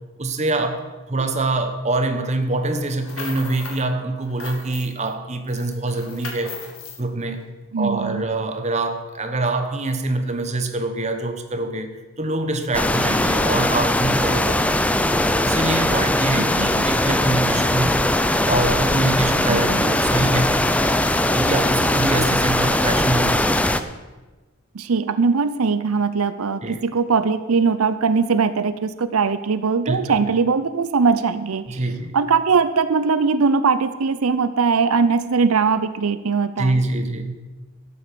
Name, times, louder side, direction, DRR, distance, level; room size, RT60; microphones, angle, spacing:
voice 1, 0.2-6.6 7.0-7.4 7.8-14.8 15.3-18.0 18.5-20.5 21.3-23.8 26.6-26.8 29.9-30.2 31.7-32.2 36.6-37.4, right 2 dB, 30° right, 6 dB, 1.2 m, -25 dB
sound 1, 2.8-3.9 4.2-5.1 5.5-7.0, left 5 dB, 85° left, 2.2 m, -37 dB
voice 2, 7.7-8.2 16.4-16.9 19.5-19.9 24.7-31.8 32.1-36.8, right 5 dB, 90° right, 13 dB, 0.6 m, -20 dB
sound 2, 12.7-23.8, left 1 dB, 5° left, 0.5 m, -20 dB
12.5 x 8.5 x 6.9 m, 1.2 s
head